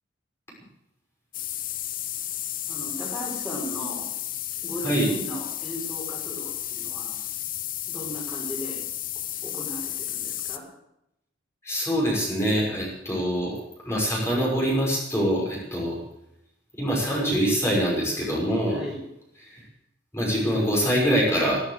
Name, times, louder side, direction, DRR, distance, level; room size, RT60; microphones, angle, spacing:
sound 1, 1.3-10.6, left 12 dB, 45° left, 1.1 m, -33 dB
voice 1, 2.7-4.0 4.6-7.1 7.9-8.8 9.4-10.6 18.7-19.0, equal, ahead, -4 dB, 5.6 m, -37 dB
voice 2, 11.6-13.6 13.8-16.0 16.8-18.8 19.5-19.6 20.1-21.6, equal, 15° left, -4 dB, 5.8 m, -24 dB
15.0 x 13.5 x 6.6 m, 0.80 s
head